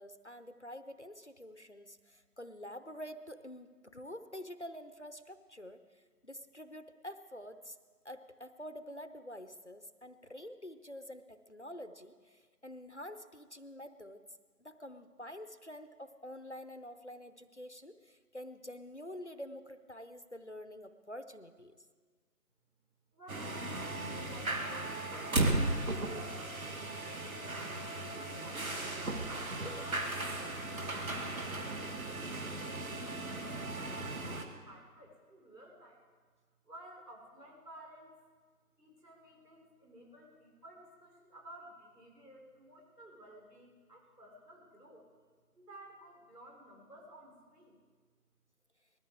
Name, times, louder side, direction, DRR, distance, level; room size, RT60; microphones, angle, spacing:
voice 1, 0.0-7.8 8.0-14.2 14.6-21.8, left 1 dB, 45° left, 10 dB, 0.6 m, -47 dB
voice 2, 23.1-26.8 28.0-36.0 36.6-38.1 38.8-45.1 45.5-47.7, right 1 dB, 75° right, 0 dB, 4.5 m, -55 dB
sound 1, 23.3-34.4, right 2 dB, 60° right, 1.5 m, -36 dB
20.0 x 13.5 x 4.8 m, 1.5 s
figure-of-eight pair, 175°, 48 cm